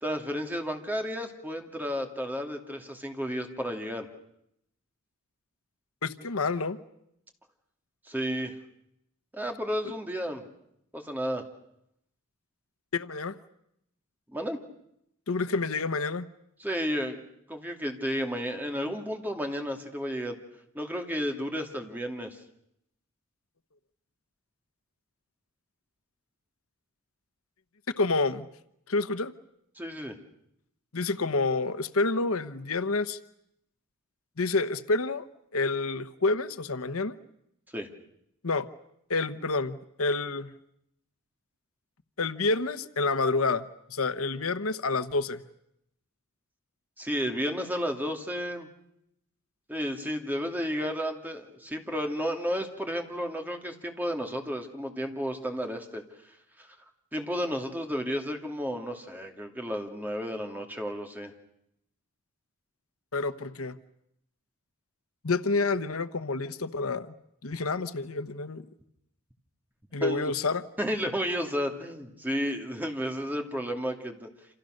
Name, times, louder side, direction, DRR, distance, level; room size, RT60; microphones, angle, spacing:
voice 1, 0.0-4.1 8.1-8.5 9.3-10.4 10.9-11.4 14.3-14.6 16.6-17.2 17.5-20.4 20.7-22.4 29.8-30.1 37.7-37.9 47.0-48.7 49.7-56.0 56.6-56.8 57.1-61.3 70.0-70.3 70.8-74.3, equal, 10° right, 3 dB, 2.7 m, -32 dB
voice 2, 6.0-6.8 12.9-13.4 15.3-16.3 28.0-28.5 28.9-29.3 30.9-33.2 34.4-35.3 35.5-37.1 38.4-38.7 39.1-40.5 42.2-45.4 63.1-63.8 65.2-67.1 67.4-68.6 69.9-70.6, left 3 dB, 75° left, 12 dB, 1.1 m, -28 dB
28.5 x 27.5 x 6.6 m, 0.77 s
head